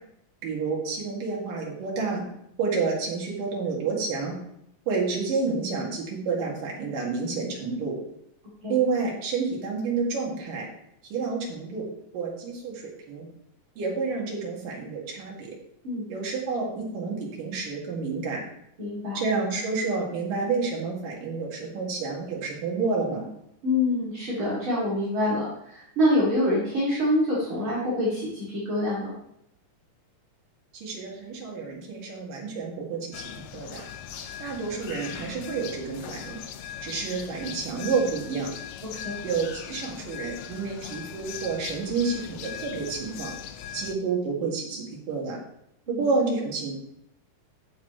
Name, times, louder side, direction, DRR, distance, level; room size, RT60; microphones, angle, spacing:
voice 1, 0.4-2.2 2.6-4.3 4.9-8.0 8.7-10.7 11.0-11.9 12.1-13.3 13.8-15.5 16.1-18.4 19.2-23.3 30.7-33.8 34.4-36.4 36.8-38.5 39.2-43.3 43.7-45.4 46.0-46.7, right 4 dB, 80° right, -2 dB, 3.7 m, -29 dB
voice 2, 18.8-19.2 23.6-29.2 39.0-39.2 45.9-46.1, left 1 dB, 40° right, -8 dB, 3.1 m, -26 dB
sound 1, 33.1-44.0, left 9 dB, 75° left, 1.6 m, -39 dB
14.5 x 6.6 x 3.1 m, 0.77 s
omnidirectional pair, 3.8 m